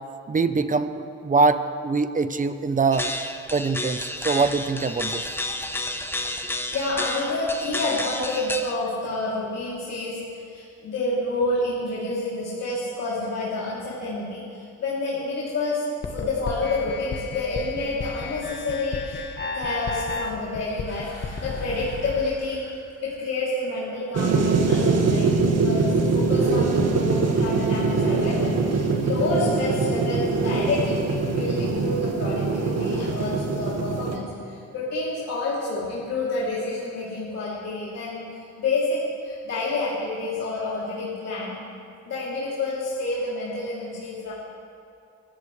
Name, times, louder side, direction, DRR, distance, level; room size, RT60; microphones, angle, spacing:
voice 1, 0.3-3.1 3.5-5.4, right 4 dB, 25° right, 11 dB, 0.8 m, -23 dB
sound 1, 2.9-8.7, left 1 dB, 5° left, 1.0 m, -31 dB
voice 2, 6.7-19.2 19.5-41.6 42.0-44.3, left 2 dB, 55° left, -8 dB, 3.3 m, -29 dB
sound 2, 16.0-22.2, left 4 dB, 35° left, 1.3 m, -33 dB
sound 3, 24.1-34.2, right 4 dB, 55° right, 1.9 m, -23 dB
24.5 x 14.0 x 3.3 m, 2.6 s
cardioid pair, 90°, 30 cm